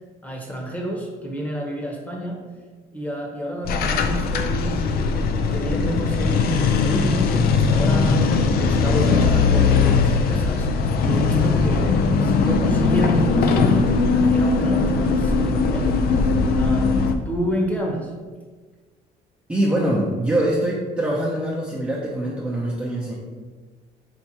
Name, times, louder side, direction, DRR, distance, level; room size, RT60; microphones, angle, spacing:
voice 1, 0.2-2.4 2.9-5.2 5.5-8.2 8.6-10.7 11.0-18.1, equal, 10° left, -1 dB, 1.0 m, -29 dB
sound 1, 3.6-17.1, left 4 dB, 65° left, 0.4 m, -19 dB
voice 2, 19.5-23.1, right 1 dB, 10° right, -6 dB, 0.6 m, -23 dB
4.6 x 3.3 x 2.8 m, 1.4 s
cardioid pair, 110°, 17 cm